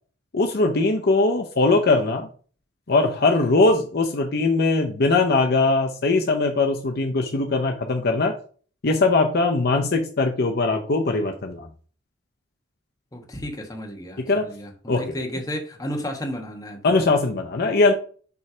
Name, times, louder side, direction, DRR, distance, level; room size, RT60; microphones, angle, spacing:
voice 1, 0.3-2.3 2.9-8.3 8.8-11.7 14.2-14.4 14.9-15.2 16.8-17.9, left 3 dB, 55° left, 4 dB, 0.7 m, -21 dB
voice 2, 13.1-17.0, equal, 20° left, 2 dB, 1.2 m, -33 dB
7.0 x 3.3 x 4.8 m, 0.42 s
head